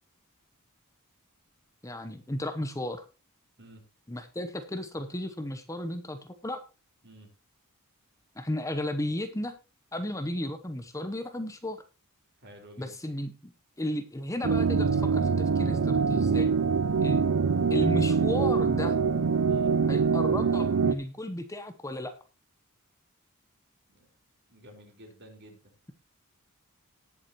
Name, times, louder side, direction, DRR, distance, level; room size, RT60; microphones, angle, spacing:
voice 1, 1.8-3.0 4.1-6.6 8.4-9.5 9.9-11.8 12.8-13.5 13.8-16.5 17.0-17.3 17.7-19.0 19.9-22.1, left 1 dB, 15° left, 8 dB, 0.9 m, -34 dB
voice 2, 7.0-7.3 12.4-12.9 19.5-19.8 23.9-24.1 24.5-25.7, right 1 dB, 50° right, 2 dB, 4.7 m, -51 dB
sound 1, 14.4-21.0, right 5 dB, 75° right, 0.5 m, -24 dB
19.0 x 7.3 x 3.0 m, 0.32 s
head